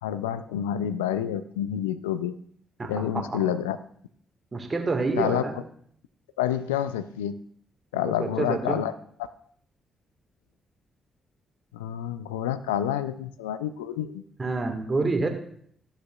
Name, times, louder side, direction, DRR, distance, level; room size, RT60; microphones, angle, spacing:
voice 1, 0.0-2.4 2.9-3.8 5.2-5.5 6.4-7.4 7.9-8.9 11.7-14.2, left 10 dB, 90° left, 14 dB, 0.3 m, -28 dB
voice 2, 2.8-3.2 4.5-5.6 7.9-8.8 14.4-15.3, right 3 dB, 35° right, 5 dB, 1.6 m, -28 dB
13.5 x 6.7 x 2.3 m, 0.63 s
hypercardioid pair, 45°, 0 cm